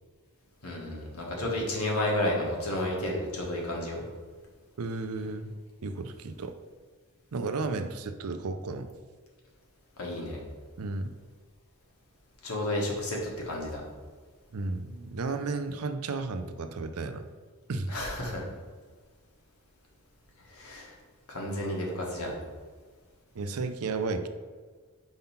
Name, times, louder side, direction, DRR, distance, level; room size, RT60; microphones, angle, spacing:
voice 1, 0.6-4.0 10.0-10.4 12.4-13.2 13.4-13.8 17.9-18.4 20.5-20.9 21.3-22.3, left 1 dB, 70° left, -2 dB, 1.6 m, -31 dB
voice 2, 4.8-5.5 5.8-6.5 7.3-8.9 10.8-11.1 14.5-17.3 17.7-17.9 23.3-24.3, right 3 dB, 75° right, 9 dB, 0.5 m, -33 dB
5.3 x 3.8 x 5.7 m, 1.5 s
head